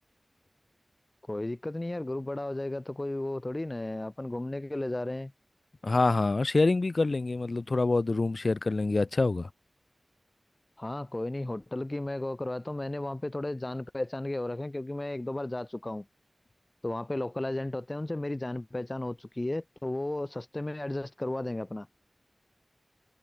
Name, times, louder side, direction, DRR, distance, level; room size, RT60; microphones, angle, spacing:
voice 1, 1.3-5.3 10.8-16.0 16.8-21.9, left 1 dB, 30° left, 2.5 m, -34 dB
voice 2, 5.8-9.5, left 3 dB, 60° left, 4.2 m, -26 dB
wide cardioid pair, 55°, 0 cm